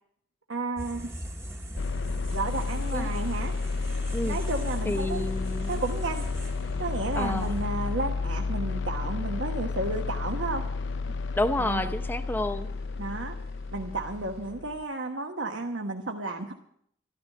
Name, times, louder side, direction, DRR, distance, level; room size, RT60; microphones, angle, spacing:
voice 1, 0.5-1.1 2.3-3.6 4.2-5.3 5.7-6.2 6.8-10.7 11.6-11.8 13.0-13.4 13.7-16.5, right 2 dB, 75° right, 2 dB, 1.1 m, -32 dB
sound 1, 0.8-7.7, right 1 dB, 15° right, 1.0 m, -41 dB
sound 2, 1.8-14.8, left 4 dB, 70° left, 0.5 m, -31 dB
sound 3, 2.3-14.5, right 3 dB, 50° right, 2.8 m, -56 dB
voice 2, 4.8-5.8 7.2-7.6 11.4-12.7, left 1 dB, 10° left, 9 dB, 0.7 m, -30 dB
13.5 x 13.0 x 6.5 m, 0.70 s
head